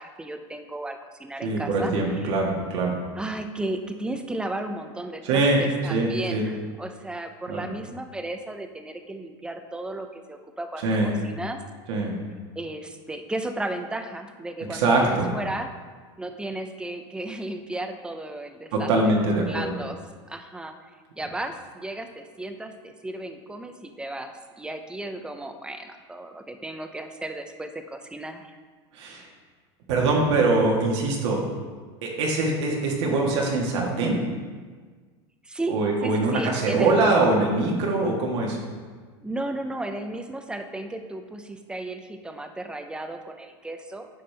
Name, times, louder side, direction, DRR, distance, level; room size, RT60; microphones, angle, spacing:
voice 1, 0.0-2.3 3.1-11.6 12.6-15.7 16.2-18.9 19.5-20.0 20.3-20.7 21.2-28.6 35.4-37.1 39.2-44.1, right 2 dB, 5° right, 7 dB, 0.6 m, -34 dB
voice 2, 1.4-2.9 5.2-5.6 5.9-6.4 7.5-7.6 10.8-11.1 11.9-12.1 14.7-15.3 18.7-19.7 28.9-29.2 29.9-31.4 32.0-34.2 35.7-38.6, right 2 dB, 75° right, -1 dB, 1.6 m, -23 dB
9.6 x 5.0 x 3.4 m, 1.5 s
supercardioid pair, 115°, 15 cm